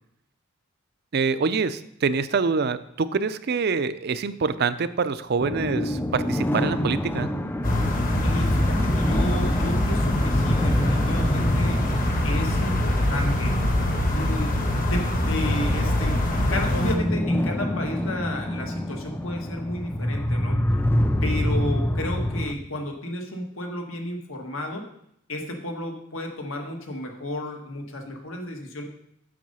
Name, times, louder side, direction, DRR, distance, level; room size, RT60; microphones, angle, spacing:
voice 1, 1.1-7.3, right 5 dB, 50° right, 13 dB, 0.5 m, -25 dB
sound 1, 5.4-22.5, left 1 dB, 10° left, 0.4 m, -27 dB
sound 2, 7.6-17.0, left 1 dB, 40° left, 1.1 m, -23 dB
voice 2, 8.2-11.8 12.2-13.5 14.1-14.6 14.8-16.2 16.5-20.6 21.2-24.8 25.3-28.8, left 1 dB, 80° left, 2 dB, 1.6 m, -32 dB
7.6 x 6.5 x 5.5 m, 0.75 s
head